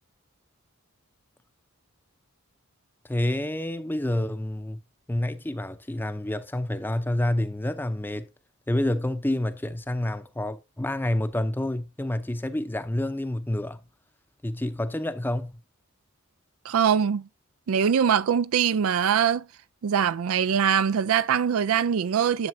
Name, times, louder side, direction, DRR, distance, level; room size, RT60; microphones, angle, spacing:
voice 1, 3.0-4.8 5.1-8.3 8.7-13.8 14.4-15.5, left 1 dB, 10° left, 0.6 m, -28 dB
voice 2, 16.7-17.3 17.7-19.4 19.8-22.5, right 7 dB, 80° right, 0.4 m, -22 dB
11.0 x 6.8 x 2.7 m
head